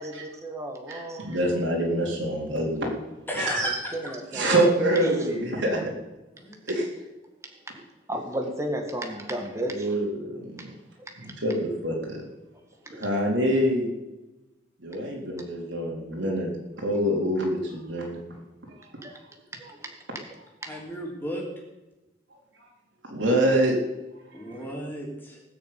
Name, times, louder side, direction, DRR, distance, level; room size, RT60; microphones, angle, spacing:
voice 1, 0.0-1.3 4.0-4.5 5.0-5.2 8.1-9.9 11.2-11.3 12.9-13.1 14.9-15.0 19.0-19.2 19.6-19.9 20.6-20.8, right 1 dB, 15° right, 2 dB, 1.8 m, -33 dB
voice 2, 0.9-2.9 3.3-3.7 4.3-5.9 6.7-6.9 9.6-10.7 11.2-12.2 13.0-13.9 14.8-16.5 16.8-18.2 23.0-23.8, right 1 dB, 75° right, -1 dB, 4.0 m, -26 dB
voice 3, 3.3-4.2 6.4-6.6 15.2-15.3 20.6-21.4 24.3-25.4, equal, 10° left, -2 dB, 3.5 m, -34 dB
18.5 x 6.6 x 8.7 m, 1.0 s
head